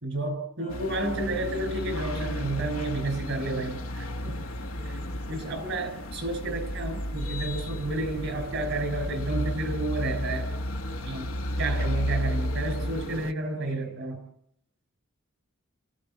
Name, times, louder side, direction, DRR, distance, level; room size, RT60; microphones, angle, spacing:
voice 1, 0.0-4.4 5.3-10.5 11.1-14.2, right 2 dB, 55° right, 10 dB, 5.5 m, -31 dB
voice 2, 0.6-0.9 4.8-5.2 11.7-12.0 13.6-14.0, left 2 dB, 40° left, 5 dB, 4.3 m, -46 dB
sound 1, 0.7-13.3, left 1 dB, 90° left, 1.1 m, -32 dB
27.5 x 15.5 x 7.4 m, 0.76 s
head